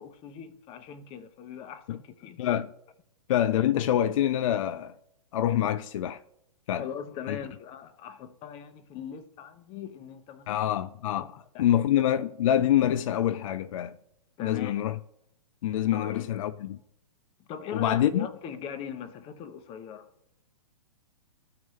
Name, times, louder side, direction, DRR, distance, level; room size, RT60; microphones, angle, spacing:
voice 1, 0.0-2.4 6.7-10.7 11.1-11.3 11.5-11.7 14.4-14.8 15.9-16.3 17.5-20.1, left 8 dB, 30° left, 0.8 m, -40 dB
voice 2, 2.4-2.7 3.3-4.9 5.3-6.2 6.7-6.9 7.3-7.4 10.5-14.0 14.4-15.0 15.6-16.8 17.7-18.3, left 11 dB, 55° left, 0.4 m, -26 dB
14.0 x 4.7 x 3.1 m
hypercardioid pair, 125°, 20 cm